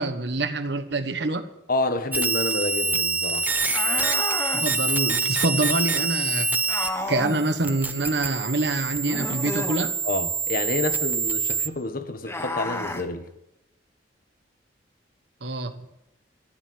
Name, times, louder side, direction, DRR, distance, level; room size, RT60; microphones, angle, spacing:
voice 1, 0.0-1.5 4.5-6.5 7.1-9.9 15.4-15.8, right 2 dB, 65° right, 1.3 m, -26 dB
voice 2, 1.7-3.5 10.0-13.3, left 2 dB, 50° left, 1.4 m, -28 dB
sound 1, 2.1-6.9 7.2-11.7, right 4 dB, 10° right, 0.8 m, -26 dB
sound 2, 3.7-4.7 6.7-7.4 9.1-9.9 12.2-13.0, left 1 dB, 15° left, 1.2 m, -31 dB
13.0 x 11.5 x 8.0 m
head